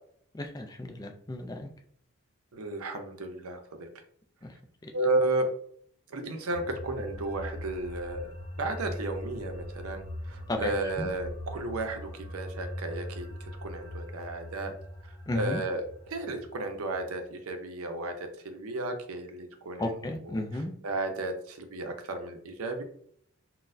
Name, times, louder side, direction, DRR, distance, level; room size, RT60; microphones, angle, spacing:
voice 1, 0.3-1.7 4.4-4.6 4.8-4.9 10.5-10.7 11.0-11.1 15.3-15.6 19.8-20.7, left 1 dB, 15° left, 4 dB, 0.3 m, -33 dB
voice 2, 2.5-3.9 4.9-5.5 6.1-14.7 15.3-19.9 20.3-20.4 20.8-22.8, right 2 dB, 80° right, 6 dB, 0.6 m, -33 dB
sound 1, 6.5-17.3, left 1 dB, 50° left, 0.9 m, -41 dB
4.0 x 2.1 x 2.6 m, 0.65 s
head